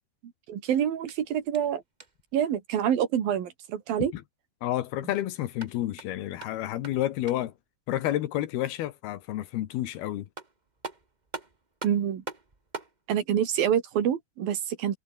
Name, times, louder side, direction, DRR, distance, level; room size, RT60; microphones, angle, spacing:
voice 1, 0.5-1.8 2.3-4.1 11.8-12.2 13.1-15.0, right 9 dB, 65° right, 4.1 m, -26 dB
sound 1, 0.9-2.3 5.4-7.6 9.9-10.0 10.4-13.0, right 3 dB, 25° right, 0.8 m, -43 dB
voice 2, 4.6-7.5 7.9-10.3, left 13 dB, 85° left, 3.2 m, -30 dB
omnidirectional pair, 4.5 m